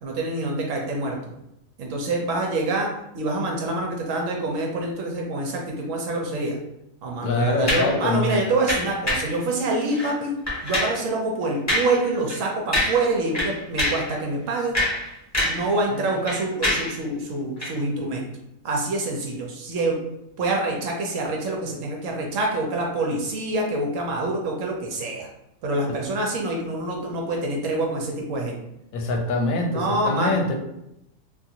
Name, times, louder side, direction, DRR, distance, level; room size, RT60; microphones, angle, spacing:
voice 1, 0.0-1.2 1.8-2.9 3.1-6.6 7.0-10.3 10.6-14.8 15.4-18.2 18.6-20.0 20.4-25.3 25.6-28.6 29.7-30.4, right 2 dB, 70° right, 0 dB, 0.9 m, -26 dB
voice 2, 7.2-8.5 15.9-16.1 25.9-26.0 28.9-30.6, left 2 dB, 75° left, 2 dB, 1.0 m, -24 dB
sound 1, 7.7-8.0 8.7-9.3 9.9-10.1 10.5-11.0 11.7-12.0 12.3-12.4 12.7-13.1 13.3-14.1 14.5-15.7 16.0-17.0 17.6-17.7, left 1 dB, 15° left, 0.8 m, -25 dB
2.5 x 2.4 x 2.7 m, 0.84 s
omnidirectional pair, 1.5 m